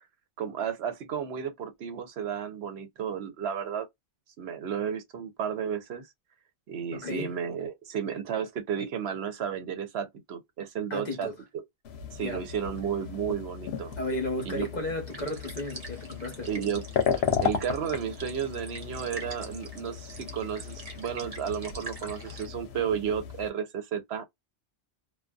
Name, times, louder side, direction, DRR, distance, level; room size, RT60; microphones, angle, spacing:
voice 1, 0.4-3.9 4.4-6.1 6.7-11.3 12.1-13.9 14.4-14.7 16.5-16.8 17.1-24.2, right 8 dB, 70° right, 0.8 m, -33 dB
voice 2, 6.9-7.3 10.9-11.3 12.1-12.5 14.0-16.5, left 1 dB, 45° left, 0.9 m, -34 dB
sound 1, 11.8-23.5, left 8 dB, 70° left, 0.9 m, -35 dB
sound 2, 15.1-22.5, right 3 dB, 35° right, 0.8 m, -45 dB
2.5 x 2.2 x 2.2 m
omnidirectional pair, 1.1 m